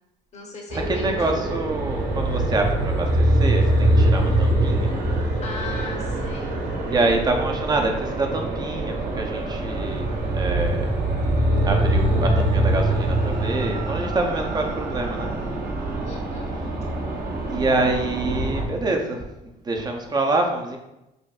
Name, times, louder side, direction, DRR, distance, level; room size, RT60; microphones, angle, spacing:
voice 1, 0.3-1.4 5.4-6.6 16.0-16.5, left 3 dB, 40° left, 0 dB, 1.0 m, -37 dB
sound 1, 0.7-18.7, right 1 dB, 55° right, 0.9 m, -23 dB
voice 2, 0.9-4.9 6.9-10.1 10.3-10.9 11.6-15.3 17.5-20.8, right 2 dB, 25° right, 2 dB, 0.6 m, -26 dB
5.1 x 2.6 x 2.4 m, 0.92 s
cardioid pair, 110°, 17 cm